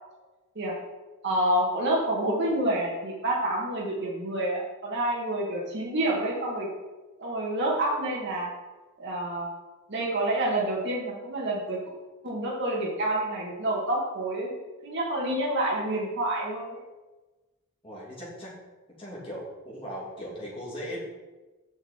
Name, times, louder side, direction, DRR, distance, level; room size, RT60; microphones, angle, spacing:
voice 1, 1.2-6.7 7.2-8.5 9.0-9.5 9.9-11.8 12.2-14.6 14.8-16.8, right 1 dB, 55° right, -3 dB, 1.6 m, -28 dB
voice 2, 17.8-18.5 19.0-21.0, equal, 25° left, -6 dB, 2.5 m, -38 dB
7.0 x 6.2 x 4.3 m, 1.2 s
head